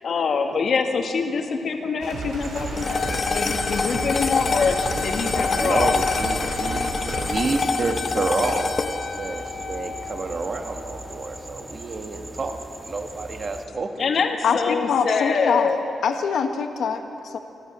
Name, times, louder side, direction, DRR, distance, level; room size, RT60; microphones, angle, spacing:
voice 1, 0.0-6.0 14.0-15.8, left 5 dB, 55° left, 4 dB, 2.0 m, -25 dB
sound 1, 2.0-7.4, right 3 dB, 85° right, 4.4 m, -33 dB
sound 2, 2.4-13.7, right 1 dB, 15° right, 1.5 m, -39 dB
sound 3, 2.8-11.3, left 4 dB, 35° left, 0.9 m, -27 dB
voice 2, 5.6-9.4 9.7-12.6 12.8-14.1, right 3 dB, 40° right, 5 dB, 1.9 m, -29 dB
voice 3, 14.4-15.7 16.0-17.4, left 6 dB, 75° left, 6 dB, 1.6 m, -24 dB
28.5 x 13.0 x 7.6 m, 2.8 s
wide cardioid pair, 135°, 0 cm